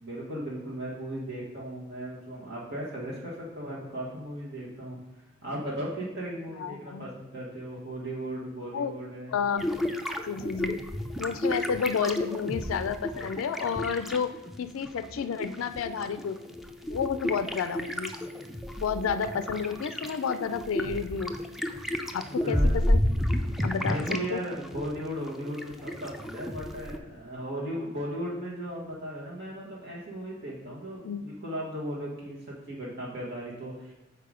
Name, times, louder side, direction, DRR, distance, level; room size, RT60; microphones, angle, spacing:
voice 1, 0.0-5.0 5.4-9.4 10.3-10.4 22.4-22.7 23.8-33.9, right 1 dB, 60° right, -5 dB, 1.5 m, -36 dB
voice 2, 6.6-7.0 8.7-8.9 9.3-9.7 10.3-10.8 11.2-14.3 14.6-16.4 16.9-18.1 18.8-21.3 22.1-23.0 23.6-24.4 31.0-31.2, left 6 dB, 85° left, 11 dB, 0.4 m, -30 dB
sound 1, 9.6-14.6 14.8-24.3 24.5-27.0, left 1 dB, ahead, 0.5 m, -31 dB
6.7 x 4.8 x 5.0 m, 1.1 s
head